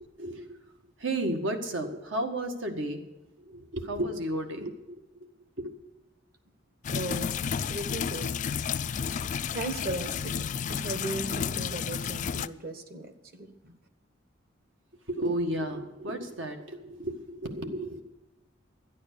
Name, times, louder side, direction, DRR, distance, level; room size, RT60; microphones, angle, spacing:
voice 1, 0.2-0.7 1.0-3.0 3.4-5.3 5.6-5.7 15.1-18.0, right 1 dB, 80° right, 4 dB, 1.7 m, -33 dB
sound 1, 6.8-12.5, left 7 dB, 40° left, 0.3 m, -31 dB
voice 2, 6.9-7.3 7.7-8.3 9.5-13.8, right 2 dB, 50° right, 8 dB, 1.4 m, -37 dB
12.0 x 10.5 x 6.7 m, 1.0 s
head